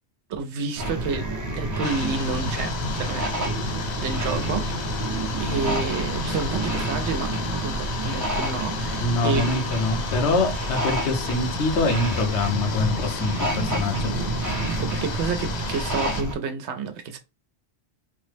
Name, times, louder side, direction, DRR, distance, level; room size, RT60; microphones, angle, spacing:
voice 1, 0.3-3.5 4.0-7.3 7.6-9.5 14.8-17.2, right 5 dB, 80° right, 0.9 m, -30 dB
sound 1, 0.8-16.3, right 1 dB, 20° right, 0.6 m, -28 dB
sound 2, 1.8-16.2, left 6 dB, 55° left, 0.5 m, -34 dB
voice 2, 9.0-14.1, left 2 dB, 75° left, 1.1 m, -24 dB
3.3 x 2.0 x 3.2 m
omnidirectional pair, 1.2 m